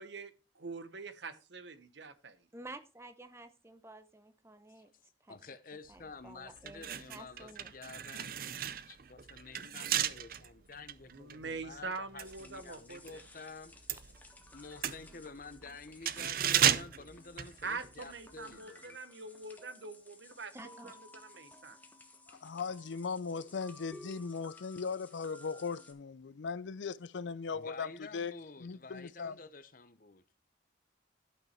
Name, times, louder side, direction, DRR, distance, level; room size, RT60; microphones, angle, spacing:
voice 1, 0.0-2.4 9.6-9.7 11.1-13.2 17.6-21.8, right 4 dB, 75° right, 1.0 m, -44 dB
voice 2, 2.5-4.9 5.2-5.4 5.9-7.7 18.5-18.6 20.5-21.0, right 2 dB, 15° right, 0.8 m, -51 dB
voice 3, 5.3-13.7 14.5-18.8 27.5-30.2, left 3 dB, 50° left, 0.9 m, -50 dB
sound 1, 6.0-6.1 6.6-13.2 13.5-18.1 18.4-18.6, right 10 dB, 50° right, 0.5 m, -35 dB
sound 2, 12.2-25.9, left 2 dB, 10° left, 1.2 m, -56 dB
voice 4, 22.3-28.3 28.6-29.4, left 5 dB, 80° left, 0.5 m, -38 dB
12.0 x 5.9 x 4.4 m
head